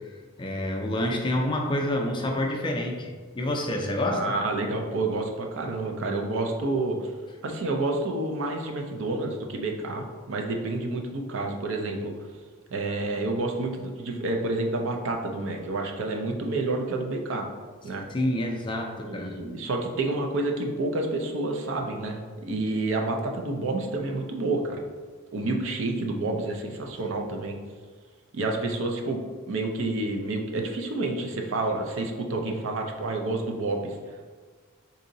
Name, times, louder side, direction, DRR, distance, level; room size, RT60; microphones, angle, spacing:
voice 1, 0.4-4.3 18.1-19.4, left 1 dB, 25° left, 1 dB, 0.4 m, -28 dB
voice 2, 4.1-7.0 7.4-12.1 12.7-17.5 17.8-18.0 19.0-24.8 25.3-27.6 28.3-29.2 29.5-34.0, right 2 dB, 65° right, 2 dB, 0.5 m, -29 dB
3.8 x 2.7 x 2.6 m, 1.5 s
head